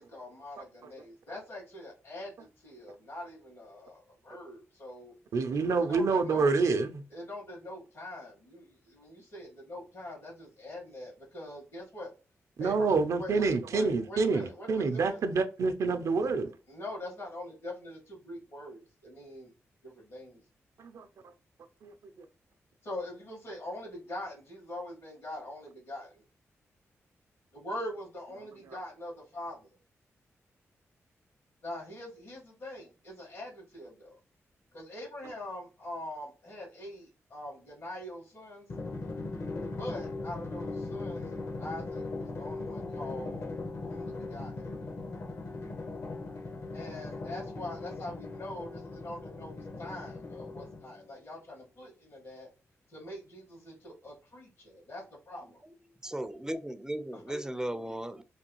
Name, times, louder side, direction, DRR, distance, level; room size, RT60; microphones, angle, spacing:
voice 1, 0.0-5.1 5.9-6.5 7.1-12.1 12.6-12.9 13.2-15.2 16.7-19.5 19.8-20.4 22.8-26.2 27.5-29.7 31.6-34.2 34.7-38.7 39.8-43.4 43.8-44.7 46.7-48.7 49.0-49.5 49.8-52.5 52.9-55.6 57.1-57.2, left 1 dB, 75° left, 1.8 m, -43 dB
voice 2, 5.3-7.0 12.6-16.5 20.8-21.1 21.8-21.9 28.7-28.8, right 4 dB, 75° right, 0.5 m, -27 dB
Drum, 38.7-51.1, left 3 dB, 55° left, 0.7 m, -39 dB
voice 3, 56.0-58.2, right 1 dB, 10° right, 0.4 m, -36 dB
3.3 x 2.3 x 2.9 m
cardioid pair, 70°, 5 cm